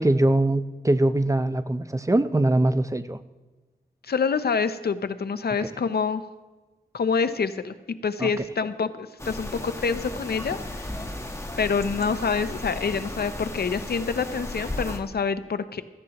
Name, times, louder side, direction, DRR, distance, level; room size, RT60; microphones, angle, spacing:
voice 1, 0.0-3.2 8.2-8.3, right 1 dB, 20° right, 11 dB, 0.5 m, -22 dB
voice 2, 4.0-6.2 6.9-7.7 8.0-11.0 11.6-15.8, left 5 dB, 80° left, 12 dB, 0.6 m, -26 dB
sound 1, 9.2-15.0, left 1 dB, 15° left, 1.3 m, -35 dB
16.5 x 14.5 x 2.9 m, 1.2 s
wide cardioid pair, 80°, 16 cm